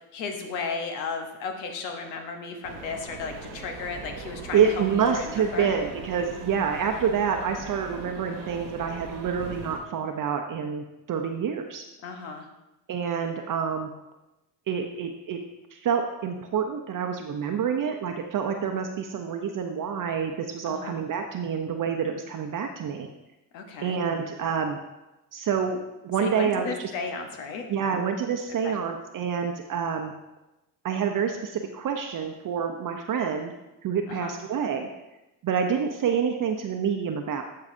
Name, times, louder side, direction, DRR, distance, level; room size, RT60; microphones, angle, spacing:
voice 1, 0.1-4.8 5.1-5.7 12.0-12.5 20.6-21.0 23.5-24.0 26.2-27.6 28.6-28.8 34.1-34.3, left 4 dB, 90° left, 5 dB, 1.1 m, -34 dB
sound 1, 2.6-9.8, right 4 dB, 90° right, 1.4 m, -40 dB
voice 2, 4.5-11.8 12.9-13.9 14.7-15.4 15.7-23.1 23.8-24.8 25.3-26.9 27.7-30.1 30.8-33.5 33.8-34.9 35.4-37.4, right 7 dB, 40° right, 4 dB, 0.7 m, -27 dB
12.0 x 4.8 x 2.7 m, 0.97 s
supercardioid pair, 75°, 48 cm